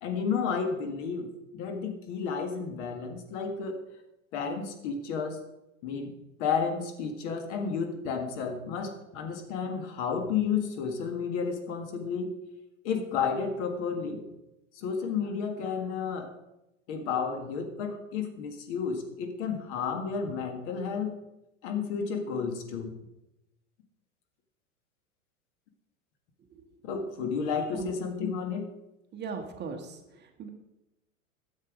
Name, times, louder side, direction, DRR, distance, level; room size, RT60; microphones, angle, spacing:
voice 1, 0.0-1.3 1.5-3.8 4.3-5.4 5.8-6.1 6.4-12.4 12.8-14.2 14.7-16.3 16.9-21.2 21.6-23.0 26.8-28.7, left 6 dB, 60° left, 5 dB, 1.7 m, -32 dB
voice 2, 29.1-30.5, right 5 dB, 25° right, 4 dB, 1.2 m, -39 dB
9.9 x 7.3 x 4.9 m, 0.93 s
hypercardioid pair, 120°, 41 cm